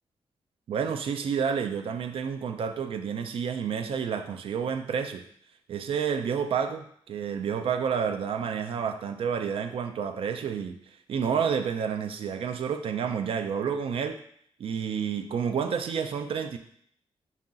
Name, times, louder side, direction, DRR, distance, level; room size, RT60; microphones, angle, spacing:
voice 1, 0.7-5.3 5.7-10.8 11.1-14.2 14.6-16.6, right 7 dB, 65° right, 8 dB, 0.4 m, -29 dB
4.8 x 2.8 x 3.7 m, 0.66 s
wide cardioid pair, 150°, 10 cm